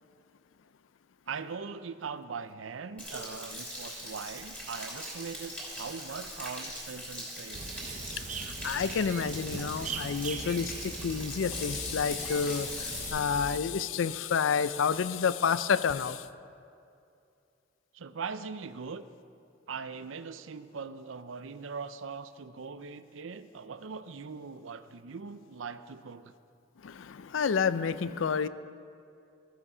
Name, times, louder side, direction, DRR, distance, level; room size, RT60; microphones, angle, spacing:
voice 1, 1.3-7.8 17.9-19.0 19.7-26.3, right 5 dB, 80° right, 0.6 m, -41 dB
Stream / Splash splatter / Trickle dribble, 3.0-13.1, equal, 5° left, 3.0 m, -41 dB
sound 1, 7.5-13.6, right 5 dB, 40° right, 0.6 m, -40 dB
voice 2, 8.6-16.2 26.8-28.5, left 6 dB, 80° left, 0.4 m, -29 dB
13.5 x 10.0 x 5.5 m
head